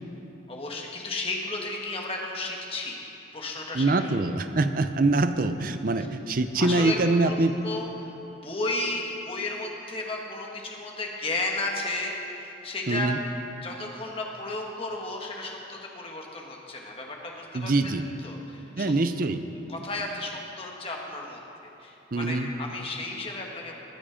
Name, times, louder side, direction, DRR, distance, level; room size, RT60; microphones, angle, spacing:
voice 1, 0.5-3.1 3.3-4.1 6.6-7.0 7.2-13.1 13.6-17.9 18.2-18.9 19.7-21.4 21.8-23.8, left 2 dB, 30° left, -1 dB, 1.4 m, -33 dB
voice 2, 3.7-7.6 12.9-13.2 17.5-18.1 18.8-19.4 22.1-22.5, right 2 dB, 45° right, 9 dB, 0.6 m, -24 dB
20.5 x 7.3 x 5.1 m, 2.9 s
head